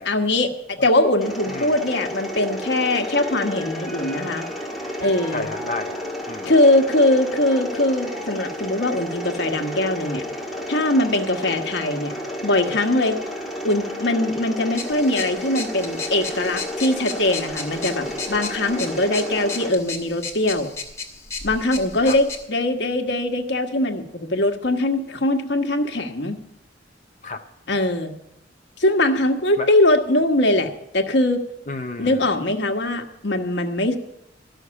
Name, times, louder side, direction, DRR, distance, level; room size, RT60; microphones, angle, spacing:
voice 1, 0.0-4.4 5.0-5.5 6.4-10.2 10.7-12.1 12.4-13.2 13.6-20.7 21.4-26.4 27.7-28.1 28.8-31.4 32.0-34.0, left 1 dB, 65° left, 4 dB, 1.3 m, -21 dB
Mechanisms, 1.2-19.7, left 1 dB, ahead, 1.6 m, -32 dB
Mallet percussion, 2.9-10.7, equal, 35° right, 3.6 m, -42 dB
voice 2, 5.3-6.5 22.0-22.2 27.2-27.4 29.6-29.7 31.7-32.2, left 3 dB, 40° left, 3 dB, 0.5 m, -32 dB
sound 1, 14.7-22.5, left 4 dB, 15° left, 1.8 m, -34 dB
13.0 x 6.4 x 9.6 m, 0.82 s
head